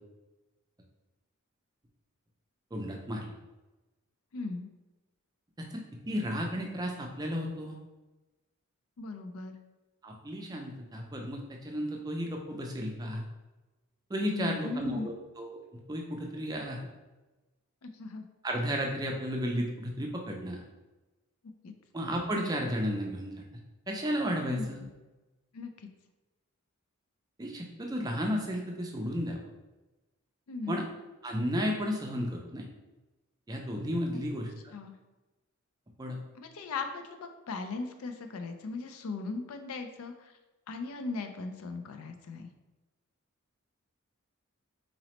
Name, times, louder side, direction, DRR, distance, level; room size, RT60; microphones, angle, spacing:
voice 1, 2.7-3.3 5.6-7.8 10.0-13.3 14.1-15.6 15.9-16.8 18.4-20.6 21.9-23.4 23.9-24.8 27.4-29.4 30.7-30.8 31.2-32.7 33.5-34.5 36.0-36.2, equal, 15° right, 1 dB, 0.4 m, -33 dB
voice 2, 4.3-4.7 9.0-9.6 14.3-15.1 17.8-18.2 21.6-21.7 24.4-24.7 25.5-25.7 30.5-30.8 34.7-34.9 36.4-40.3 40.7-42.5, left 3 dB, 75° left, 6 dB, 0.4 m, -38 dB
3.9 x 3.0 x 2.9 m, 1.1 s
head